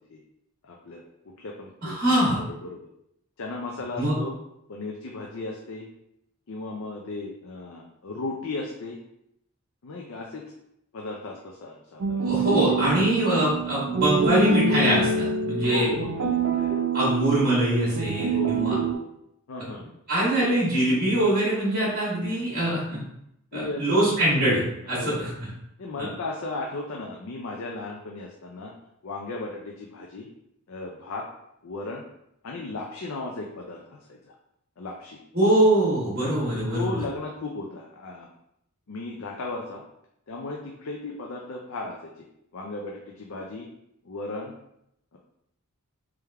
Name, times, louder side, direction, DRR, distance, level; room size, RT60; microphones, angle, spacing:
voice 1, 0.6-2.9 3.4-4.4 4.7-5.9 6.5-9.0 9.8-10.5 10.9-12.2 12.8-12.9 15.6-16.8 18.2-19.0 19.5-19.9 22.5-22.8 23.5-24.1 24.8-25.3 25.8-28.7 29.0-30.3 30.7-31.3 31.6-32.0 32.4-34.3 34.8-35.2 36.7-38.3 38.9-39.8 40.3-42.3 42.5-43.7 44.0-44.5 45.1-45.2, left 2 dB, 65° left, -1 dB, 0.5 m, -36 dB
voice 2, 1.8-2.4 4.0-4.1 12.2-15.9 16.9-18.7 20.1-23.0 23.5-25.3 26.0-26.1 35.3-37.0, right 1 dB, 45° right, -7 dB, 1.4 m, -23 dB
sound 1, 12.0-18.9, right 4 dB, 60° right, 0.4 m, -26 dB
3.4 x 3.4 x 3.4 m, 0.79 s
head